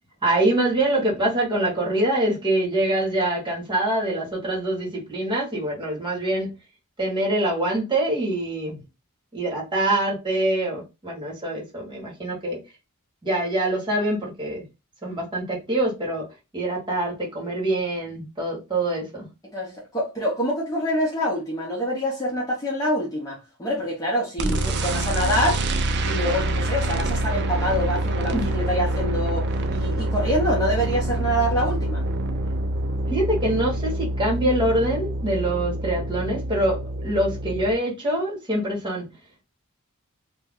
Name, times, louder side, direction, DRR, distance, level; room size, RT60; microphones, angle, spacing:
voice 1, 0.2-6.5 7.0-8.8 9.3-12.6 13.2-14.7 15.0-16.2 16.5-19.3 24.4-24.7 28.3-28.5 33.1-39.1, right 1 dB, 20° right, 1.4 m, -25 dB
voice 2, 19.5-25.6 26.0-32.0, equal, 15° left, 0.8 m, -26 dB
sound 1, 24.4-37.7, right 1 dB, 50° right, 0.5 m, -26 dB
2.7 x 2.2 x 3.5 m
head